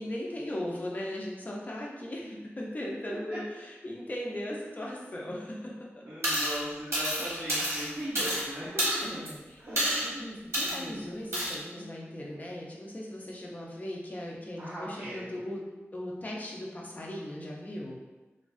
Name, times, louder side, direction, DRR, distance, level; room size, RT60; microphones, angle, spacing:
voice 1, 0.0-5.7 9.0-15.6 15.9-18.0, left 1 dB, 35° left, -3 dB, 0.5 m, -38 dB
voice 2, 3.0-3.4 6.0-8.8 9.6-10.3 10.6-11.0 14.6-15.3, equal, 45° right, -11 dB, 0.7 m, -39 dB
sound 1, 6.2-6.6 6.9-8.4 8.8-9.3 9.8-10.1 10.5-10.8 11.3-11.5, equal, 75° right, 1.0 m, -29 dB
2.4 x 2.3 x 2.3 m, 1.2 s
wide cardioid pair, 100°, 5 cm